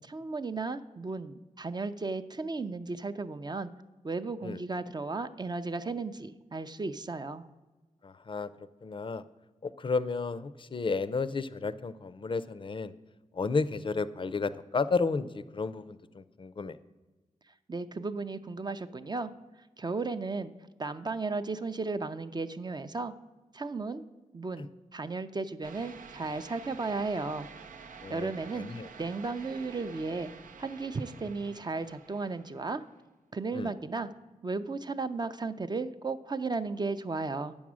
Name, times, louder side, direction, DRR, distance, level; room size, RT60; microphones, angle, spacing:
voice 1, 0.1-3.7 4.0-7.5 17.7-19.3 19.8-20.5 20.8-23.1 23.5-24.0 24.3-27.5 28.1-28.7 29.0-30.3 30.6-32.8 33.3-34.1 34.4-37.5, right 3 dB, 30° right, 10 dB, 0.4 m, -35 dB
voice 2, 8.0-8.5 8.8-9.2 9.6-12.9 13.3-16.8 24.6-24.7 28.0-28.9 33.5-33.7, left 4 dB, 40° left, 15 dB, 0.5 m, -32 dB
sound 1, 25.6-32.9, right 5 dB, 90° right, 0.6 m, -50 dB
8.6 x 7.2 x 6.1 m, 1.2 s
wide cardioid pair, 85°, 13 cm